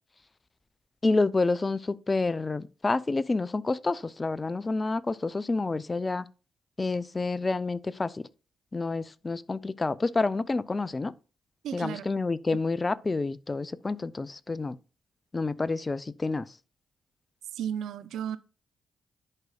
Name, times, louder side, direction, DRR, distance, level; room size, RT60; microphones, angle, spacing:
voice 1, 1.0-6.3 6.8-8.2 8.7-11.1 11.7-14.8 15.3-16.5, left 3 dB, 30° left, 0.5 m, -28 dB
voice 2, 11.6-12.1 17.5-18.4, right 9 dB, 75° right, 0.5 m, -34 dB
11.0 x 4.7 x 2.3 m
supercardioid pair, 50°, 0 cm